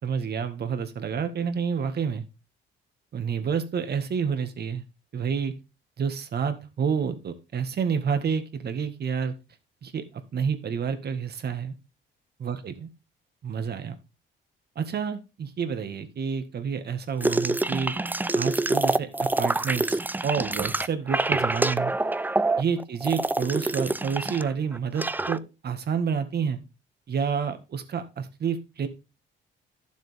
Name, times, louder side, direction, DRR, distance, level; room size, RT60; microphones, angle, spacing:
voice 1, 0.0-2.2 3.1-4.8 5.1-5.5 6.0-9.3 9.8-10.0 10.3-11.7 12.4-12.9 13.4-13.9 14.7-17.9 18.3-21.9 22.6-26.6 27.1-28.9, right 6 dB, 55° right, 8 dB, 1.8 m, -29 dB
sound 1, 17.2-24.5 24.7-25.4, right 2 dB, 10° right, 0.4 m, -26 dB
12.0 x 7.3 x 3.6 m, 0.28 s
cardioid pair, 90°, 20 cm